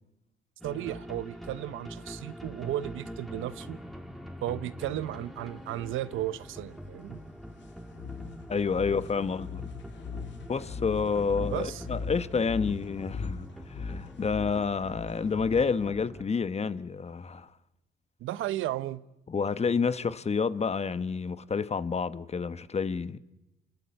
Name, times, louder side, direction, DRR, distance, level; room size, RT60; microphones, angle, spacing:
sound 1, 0.6-16.2, equal, ahead, 2.9 m, -44 dB
voice 1, 0.6-3.8 4.4-7.2 11.5-11.8 18.2-19.0, right 13 dB, 85° right, 0.9 m, -34 dB
sound 2, 7.9-15.9, left 5 dB, 65° left, 2.4 m, -39 dB
voice 2, 8.5-9.6 10.5-17.5 19.3-23.2, left 5 dB, 30° left, 1.1 m, -29 dB
28.5 x 20.5 x 8.8 m
cardioid pair, 90°, 20 cm